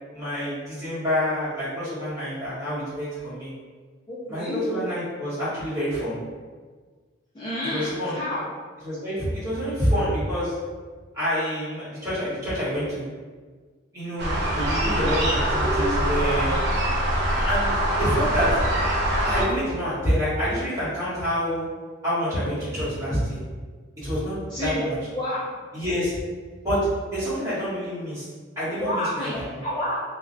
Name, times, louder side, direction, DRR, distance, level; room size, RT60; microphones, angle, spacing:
voice 1, 0.1-3.5 4.3-6.2 7.7-8.2 8.8-10.5 11.1-13.0 13.9-16.6 17.4-18.6 19.2-21.7 22.0-23.4 24.0-24.4 24.6-24.9 25.7-26.1 26.6-26.8 27.1-28.3 28.6-29.3, equal, 15° right, -13 dB, 1.1 m, -27 dB
voice 2, 4.1-4.6 7.3-8.5 24.5-24.9 25.1-25.4 28.8-30.1, left 1 dB, 20° left, -10 dB, 0.4 m, -29 dB
sound 1, 14.2-19.5, right 1 dB, 55° right, 0.4 m, -23 dB
2.3 x 2.1 x 2.5 m, 1.5 s
head